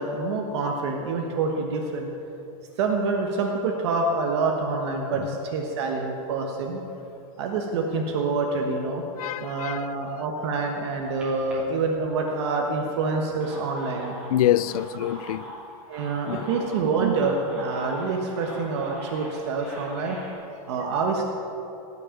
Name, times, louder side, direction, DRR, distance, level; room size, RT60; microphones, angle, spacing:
voice 1, 0.0-2.1 2.8-6.8 7.4-9.0 9.4-14.1 15.9-21.2, right 4 dB, 45° right, 1.4 m, -27 dB
voice 2, 9.2-9.9 14.3-15.5 16.3-16.7, left 12 dB, 75° left, 0.4 m, -26 dB
sound 1, 11.2-12.4 13.1-20.3, equal, 5° right, 2.8 m, -42 dB
18.0 x 6.8 x 8.5 m
supercardioid pair, 180°, 19 cm